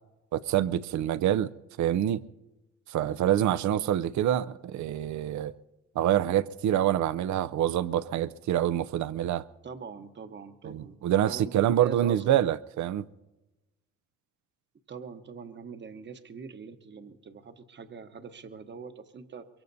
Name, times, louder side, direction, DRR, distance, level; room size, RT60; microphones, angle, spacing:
voice 1, 0.3-1.5 1.8-2.2 2.9-5.5 6.0-9.4 10.6-13.0, right 11 dB, 70° right, 0.6 m, -26 dB
voice 2, 9.6-11.0 11.3-12.5 14.9-19.5, right 5 dB, 35° right, 1.0 m, -43 dB
23.0 x 23.0 x 2.7 m
cardioid pair, 90°, 30 cm